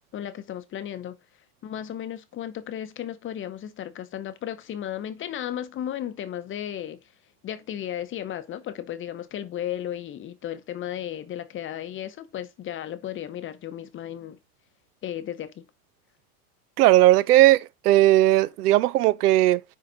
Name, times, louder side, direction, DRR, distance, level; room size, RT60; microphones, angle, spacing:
voice 1, 0.1-1.2 1.6-7.0 7.4-14.4 15.0-15.6, left 10 dB, 30° left, 0.8 m, -34 dB
voice 2, 16.8-19.6, right 15 dB, 90° right, 0.6 m, -18 dB
10.0 x 3.9 x 3.9 m
supercardioid pair, 125°, 45 cm